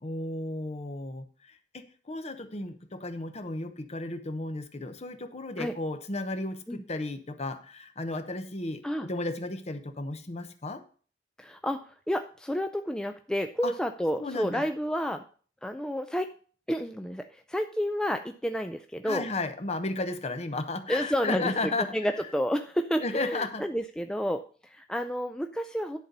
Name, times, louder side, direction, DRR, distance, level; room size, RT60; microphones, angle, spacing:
voice 1, 0.0-10.8 13.6-13.7 14.2-14.6 19.0-21.9 23.0-23.7, left 2 dB, 40° left, 9 dB, 0.9 m, -34 dB
voice 2, 11.4-15.2 15.6-16.3 16.7-19.3 20.9-21.5 21.9-26.0, equal, 5° left, 6 dB, 0.4 m, -30 dB
10.5 x 4.1 x 6.6 m, 0.41 s
head